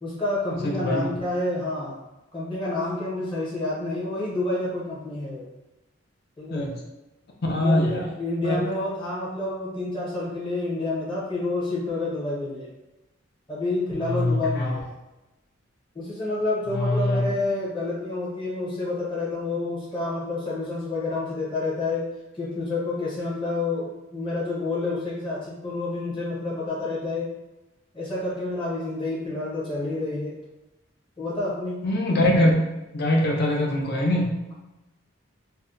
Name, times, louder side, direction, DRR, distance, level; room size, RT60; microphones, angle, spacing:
voice 1, 0.0-2.0 2.3-5.5 6.4-6.7 7.5-12.7 13.5-14.8 15.9-22.0 22.3-27.3 27.9-30.3 31.2-31.8, left 2 dB, 25° left, -7 dB, 0.8 m, -29 dB
voice 2, 0.6-1.1 6.5-6.7 7.5-8.0 8.4-8.6 14.0-14.8 16.7-17.2 31.8-32.5 32.9-34.4, left 1 dB, 55° left, -1 dB, 0.6 m, -23 dB
2.8 x 2.1 x 3.7 m, 1.0 s
head